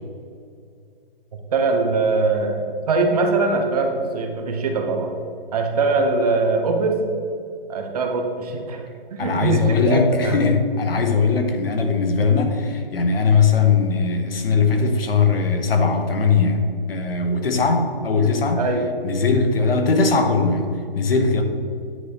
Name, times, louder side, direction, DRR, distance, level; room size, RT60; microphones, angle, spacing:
voice 1, 1.5-5.1 5.5-7.0 7.7-8.8 9.1-10.4 18.6-18.9, right 3 dB, 40° right, 3 dB, 0.8 m, -22 dB
voice 2, 9.2-18.6 19.0-21.4, left 4 dB, 80° left, 5 dB, 1.0 m, -20 dB
9.1 x 3.3 x 4.2 m, 2.4 s
hypercardioid pair, 155°, 29 cm